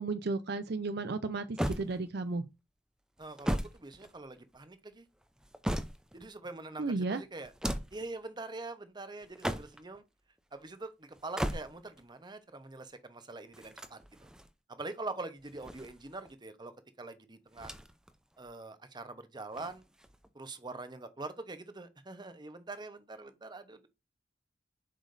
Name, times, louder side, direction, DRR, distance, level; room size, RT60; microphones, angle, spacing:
voice 1, 0.0-2.4 6.8-7.2, right 3 dB, 60° right, 0.5 m, -33 dB
sound 1, 1.6-2.4 3.2-4.6 5.2-6.3 7.4-8.1 9.2-10.0 11.1-12.0 13.5-14.5 15.4-16.3 17.5-18.1 18.4-18.5 19.5-20.3, equal, 5° right, 0.5 m, -37 dB
voice 2, 3.2-5.1 6.1-10.0 10.5-14.3 14.7-16.7 17.0-17.7 18.4-19.8 20.3-23.9, right 3 dB, 25° right, 0.8 m, -44 dB
7.5 x 5.0 x 2.6 m
head